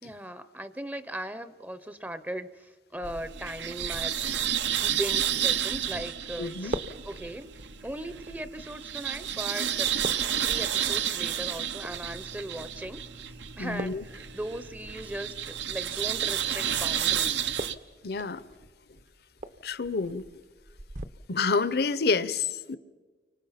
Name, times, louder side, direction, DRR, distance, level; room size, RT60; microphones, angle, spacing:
voice 1, 0.0-4.2 4.8-6.8 7.0-7.5 7.8-9.9 10.4-13.2 13.6-17.5, right 1 dB, 10° right, 13 dB, 0.6 m, -38 dB
sound 1, 2.9-21.0, right 1 dB, 45° right, 0.8 m, -44 dB
sound 2, 3.0-17.7, right 9 dB, 85° right, 0.9 m, -31 dB
voice 2, 6.4-6.7 13.6-14.0 18.0-18.5 19.6-20.2 21.3-22.8, left 4 dB, 60° left, 16 dB, 0.7 m, -28 dB
29.5 x 24.5 x 5.8 m, 1.4 s
head